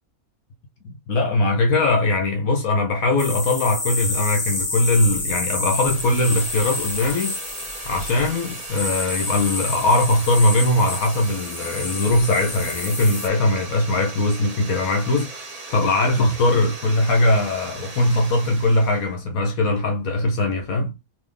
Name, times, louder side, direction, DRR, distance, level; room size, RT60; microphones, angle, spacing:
voice 1, 0.8-7.4 7.9-20.9, left 2 dB, 75° left, 1.3 m, -20 dB
sound 1, 3.2-13.3, left 2 dB, 10° left, 1.1 m, -29 dB
sound 2, 5.7-19.1, right 3 dB, 30° right, 0.8 m, -38 dB
3.5 x 3.3 x 3.7 m
omnidirectional pair, 1.5 m